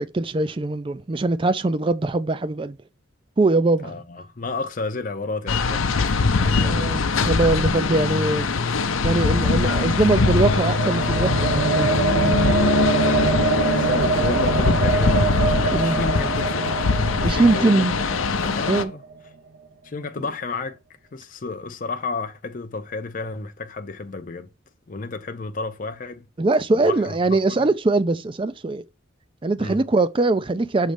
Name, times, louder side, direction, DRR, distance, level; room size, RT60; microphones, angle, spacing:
voice 1, 0.0-2.8 3.4-3.9 6.4-8.5 9.0-11.9 15.7-16.0 17.2-17.9 18.7-18.9 26.4-28.8 29.4-30.9, right 2 dB, 25° right, 0.4 m, -22 dB
voice 2, 3.8-6.2 12.9-16.7 17.2-17.9 18.4-19.0 19.8-20.8 21.1-24.5 24.9-26.3 26.7-27.7 29.6-29.8, left 3 dB, 40° left, 0.5 m, -32 dB
sound 1, 5.5-18.8, left 4 dB, 85° left, 0.6 m, -22 dB
sound 2, 8.9-19.1, right 4 dB, 70° right, 0.7 m, -25 dB
6.5 x 3.1 x 5.0 m
head